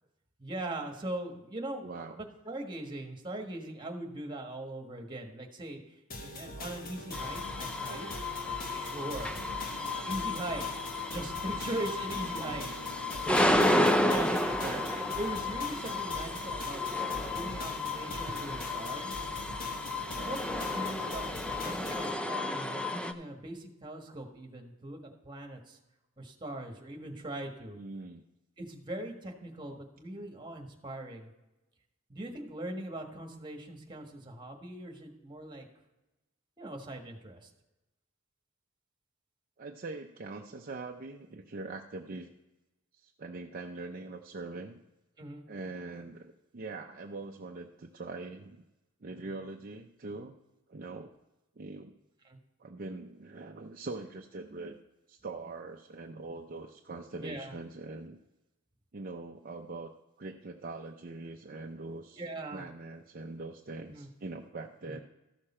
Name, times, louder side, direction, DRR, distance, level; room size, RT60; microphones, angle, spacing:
voice 1, 0.4-8.1 8.7-9.4 10.0-10.6 11.1-12.6 13.5-14.6 14.9-17.0 17.3-19.2 20.2-21.2 21.6-25.8 26.2-27.8 28.6-31.3 32.1-35.6 36.6-37.5 45.2-45.4 52.2-52.4 57.2-57.5 62.2-62.7 63.9-64.1 64.8-65.0, right 1 dB, 20° right, 2 dB, 1.5 m, -40 dB
voice 2, 1.8-2.2 13.3-13.9 14.6-14.9 18.3-18.4 27.7-28.2 39.6-42.3 42.9-44.8 45.5-48.6 49.0-50.4 50.7-51.1 51.6-51.9 52.6-54.8 55.1-58.2 58.9-59.9 60.2-62.2 62.5-65.0, right 3 dB, 45° right, 2 dB, 0.6 m, -42 dB
sound 1, 6.1-22.1, left 2 dB, 45° left, 1.0 m, -42 dB
sound 2, 7.1-23.1, left 1 dB, 5° left, 0.5 m, -32 dB
13.5 x 6.7 x 4.3 m, 1.0 s
head